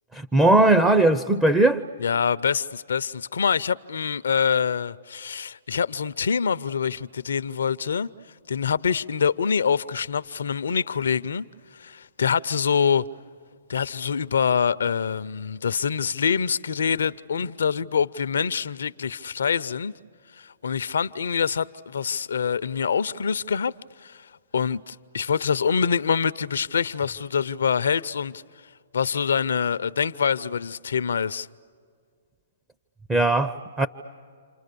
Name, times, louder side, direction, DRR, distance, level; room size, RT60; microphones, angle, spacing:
voice 1, 0.1-1.8 33.1-33.9, right 2 dB, 10° right, 0.7 m, -19 dB
voice 2, 2.0-8.1 8.5-11.4 11.8-13.0 13.7-19.9 20.4-23.7 24.0-24.2 24.5-28.3 28.9-31.5, left 6 dB, 75° left, 0.6 m, -25 dB
29.5 x 26.5 x 6.8 m
hypercardioid pair, 130°, 0 cm